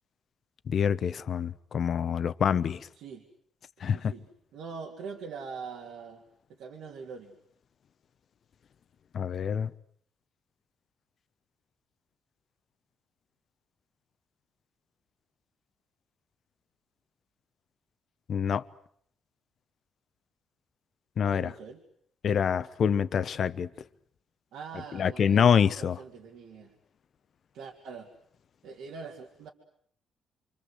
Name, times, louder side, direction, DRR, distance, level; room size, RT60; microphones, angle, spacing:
voice 1, 0.7-2.8 3.8-4.1 9.1-9.7 18.3-18.6 21.2-21.5 22.2-23.7 24.9-26.0, left 7 dB, 55° left, 1.1 m, -26 dB
voice 2, 3.8-6.2 6.5-7.3 21.2-21.8 24.5-26.7 27.5-28.1 28.6-29.5, right 5 dB, 85° right, 3.3 m, -43 dB
29.0 x 25.0 x 8.1 m
cardioid pair, 90°, 0 cm